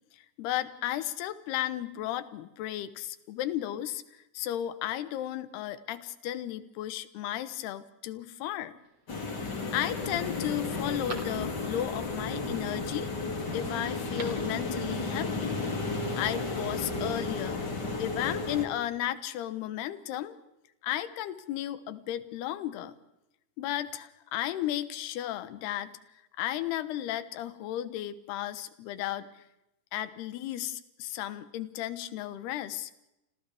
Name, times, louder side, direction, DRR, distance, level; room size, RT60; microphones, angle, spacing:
voice 1, 0.4-4.0 4.3-8.8 9.4-13.1 13.5-15.6 16.1-17.6 18.0-20.4 20.8-22.9 23.6-26.0 26.4-29.4 29.9-32.9, left 12 dB, 75° left, 13 dB, 3.0 m, -34 dB
Telephone, 8.8-9.4 9.9-10.0 10.4-11.9 13.9-14.5 14.8-14.9, right 3 dB, 30° right, 2.8 m, -46 dB
sound 1, 9.1-18.7, left 3 dB, 30° left, 2.4 m, -33 dB
30.0 x 25.5 x 3.5 m, 0.91 s
omnidirectional pair, 4.8 m